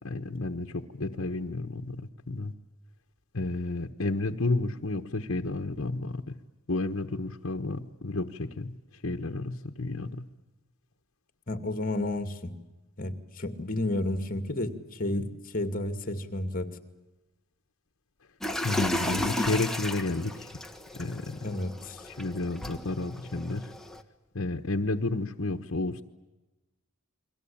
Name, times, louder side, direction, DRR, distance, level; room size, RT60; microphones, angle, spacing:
voice 1, 0.0-2.5 3.3-6.4 6.7-8.8 9.0-10.2 15.1-15.2 18.6-20.6 20.9-21.6 22.1-23.7 24.3-26.0, left 2 dB, 65° left, 4 dB, 1.3 m, -31 dB
voice 2, 11.5-12.5 13.0-16.7 21.4-22.0, left 1 dB, 45° left, 9 dB, 2.4 m, -31 dB
sound 1, 18.4-24.0, left 1 dB, ahead, 1.4 m, -34 dB
30.0 x 23.0 x 8.8 m, 1.1 s
head